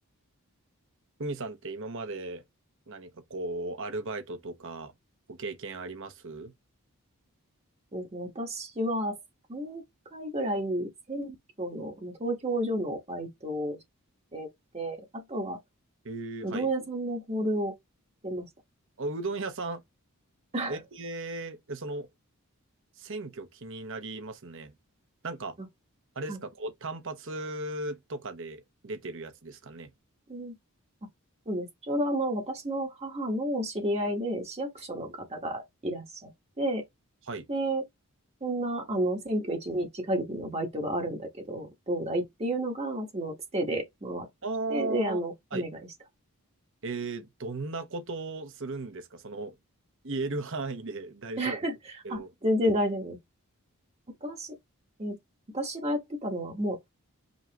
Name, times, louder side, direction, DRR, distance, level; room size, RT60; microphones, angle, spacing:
voice 1, 1.2-2.4 2.9-4.9 5.3-6.5 16.0-16.7 19.0-19.8 20.7-22.1 23.0-24.7 25.2-25.6 26.1-29.9 37.2-37.5 44.4-45.2 45.5-45.7 46.8-49.6 50.0-51.7 52.0-52.3, right 2 dB, 60° right, 1.0 m, -36 dB
voice 2, 7.9-9.2 9.5-9.8 10.1-13.8 14.3-14.5 14.7-15.6 16.4-17.7 18.2-18.5 20.5-20.8 26.3-26.4 30.3-30.5 31.5-36.3 36.6-36.8 37.5-37.8 38.4-44.3 44.7-45.8 51.4-51.7 52.1-53.2 54.2-54.6 55.0-55.2 55.5-56.8, right 1 dB, 30° right, 1.2 m, -31 dB
5.4 x 2.9 x 2.9 m
head